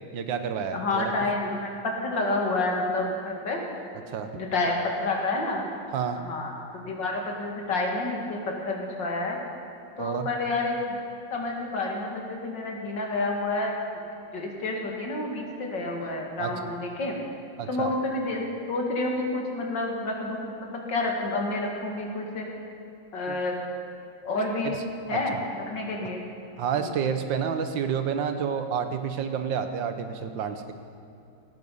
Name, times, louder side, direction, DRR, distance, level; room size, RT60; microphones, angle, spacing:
voice 1, 0.1-1.1 4.1-4.4 5.9-6.2 10.0-10.3 16.4-16.5 17.6-17.9 23.3-23.4 24.6-24.7 25.1-25.4 26.6-30.7, right 7 dB, 85° right, 8 dB, 1.7 m, -29 dB
voice 2, 0.7-3.6 4.3-5.6 6.2-9.4 10.0-11.0 11.3-13.8 14.3-17.1 17.7-22.5 23.1-23.6 24.2-24.8 25.1-26.3 26.7-27.0, left 2 dB, 75° left, 0 dB, 2.9 m, -29 dB
18.0 x 13.0 x 5.5 m, 2.7 s
omnidirectional pair, 2.0 m